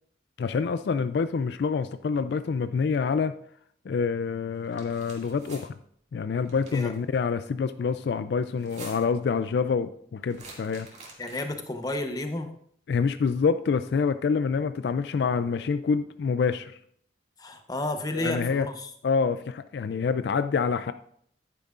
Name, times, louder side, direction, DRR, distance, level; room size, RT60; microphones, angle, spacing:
voice 1, 0.4-3.3 3.9-5.8 6.1-10.9 12.9-16.7 18.1-18.7 19.0-20.9, left 5 dB, 65° left, 12 dB, 0.3 m, -26 dB
sound 1, 4.6-5.6 6.4-7.0 8.5-9.2 10.3-11.6, right 3 dB, 40° right, 2.2 m, -47 dB
voice 2, 11.2-12.5 17.4-18.9, left 1 dB, 20° left, 7 dB, 0.8 m, -31 dB
10.5 x 9.3 x 2.5 m, 0.65 s
head